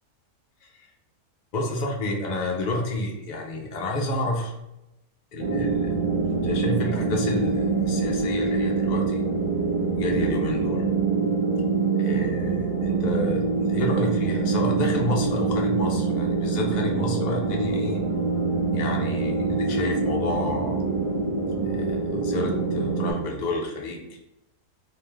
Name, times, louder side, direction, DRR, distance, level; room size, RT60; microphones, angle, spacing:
voice 1, 1.5-4.5 5.3-6.0 6.3-9.2 9.9-10.8 11.9-18.0 18.7-20.8 21.6-24.1, left 2 dB, 65° left, 1 dB, 0.4 m, -30 dB
sound 1, 5.4-23.1, right 4 dB, 50° right, 0.6 m, -25 dB
3.5 x 2.8 x 3.1 m, 0.91 s
omnidirectional pair, 1.6 m